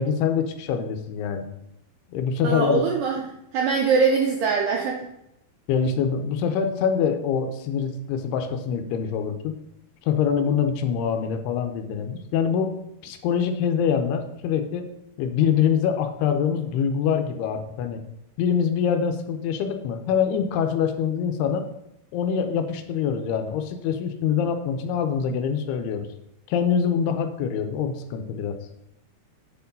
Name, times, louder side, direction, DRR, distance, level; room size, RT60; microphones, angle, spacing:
voice 1, 0.0-1.5 2.1-2.8 5.7-9.6 10.0-12.7 13.0-14.9 15.2-18.0 18.4-21.7 22.1-26.1 26.5-28.6, left 7 dB, 80° left, 7 dB, 2.6 m, -24 dB
voice 2, 2.4-5.0, right 5 dB, 85° right, 0 dB, 1.9 m, -23 dB
8.2 x 4.7 x 5.2 m, 0.82 s
omnidirectional pair, 4.8 m